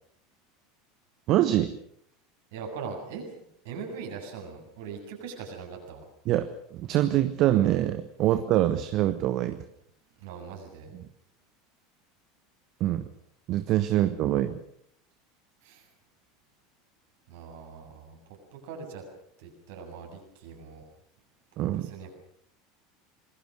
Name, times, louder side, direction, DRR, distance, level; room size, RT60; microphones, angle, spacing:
voice 1, 1.3-1.7 6.2-9.6 10.9-11.0 12.8-13.0 13.5-14.6 21.6-21.9, right 13 dB, 45° right, 11 dB, 1.2 m, -25 dB
voice 2, 2.5-3.3 3.6-6.0 10.2-10.9 15.6-15.9 17.3-19.0 19.4-20.8 21.7-22.1, right 5 dB, 60° right, 2 dB, 7.5 m, -41 dB
26.5 x 21.0 x 6.4 m, 0.68 s
figure-of-eight pair, 75°, 0 cm